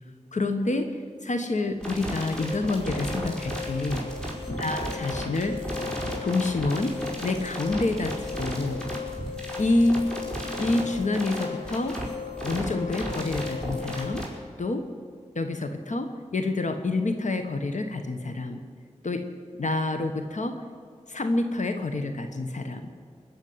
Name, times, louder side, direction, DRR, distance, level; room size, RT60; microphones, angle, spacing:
voice 1, 0.3-0.9 1.2-4.0 4.5-5.6 6.2-6.9 7.2-8.8 9.6-10.0 10.6-12.0 12.4-14.2 14.6-14.9 15.3-18.6 19.0-19.2 19.6-20.5 21.1-22.9, left 2 dB, 75° left, 7 dB, 1.2 m, -27 dB
sound 1, 1.8-14.2, right 1 dB, 5° left, 4.9 m, -34 dB
sound 2, 2.4-14.1, left 6 dB, 45° left, 2.0 m, -38 dB
20.5 x 7.1 x 9.5 m, 2.2 s
wide cardioid pair, 50°, 13 cm